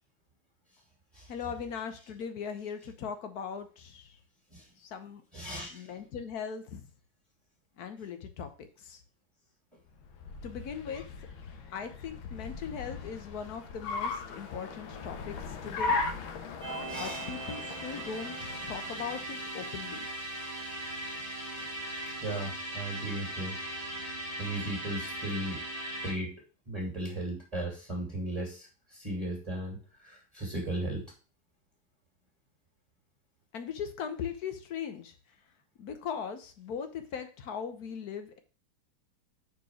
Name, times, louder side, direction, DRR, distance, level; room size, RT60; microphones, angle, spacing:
voice 1, 1.3-4.1 4.8-5.2 5.7-6.8 7.8-9.0 10.4-11.0 11.7-16.0 17.0-20.1 33.5-35.1 35.8-38.4, left 7 dB, 55° left, 8 dB, 1.3 m, -39 dB
voice 2, 5.3-6.0 16.9-17.3 21.1-23.6 24.4-25.6 26.0-31.0, right 1 dB, 20° right, -2 dB, 2.3 m, -37 dB
Car, 9.9-19.4, left 4 dB, 80° left, 1.7 m, -38 dB
sound 1, 16.6-26.1, right 1 dB, 40° right, 2.2 m, -39 dB
5.9 x 4.5 x 6.2 m, 0.36 s
omnidirectional pair, 2.2 m